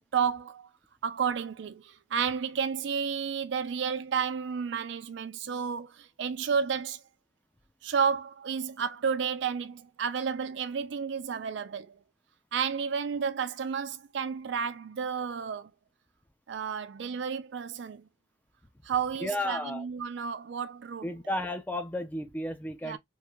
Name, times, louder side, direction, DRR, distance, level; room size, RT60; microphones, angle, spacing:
voice 1, 0.1-0.7 1.0-7.0 7.8-12.0 12.5-15.7 16.5-18.1 18.8-21.1 22.8-23.0, right 6 dB, 65° right, 0.4 m, -31 dB
voice 2, 19.2-19.8 21.0-23.0, left 1 dB, 10° left, 0.3 m, -33 dB
3.1 x 2.6 x 2.2 m
head